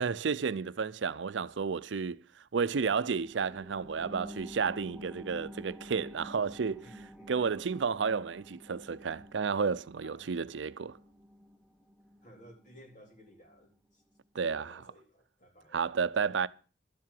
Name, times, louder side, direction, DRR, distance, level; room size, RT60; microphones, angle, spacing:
voice 1, 0.0-2.2 2.5-6.9 7.3-11.0 14.3-14.8 15.7-16.5, right 5 dB, 85° right, 0.5 m, -31 dB
sound 1, 2.6-13.7 14.1-14.2, equal, 5° left, 1.0 m, -50 dB
voice 2, 6.8-7.4 10.0-10.4 12.2-14.0 14.5-15.8, equal, 45° left, 3.7 m, -56 dB
12.5 x 7.5 x 7.6 m
head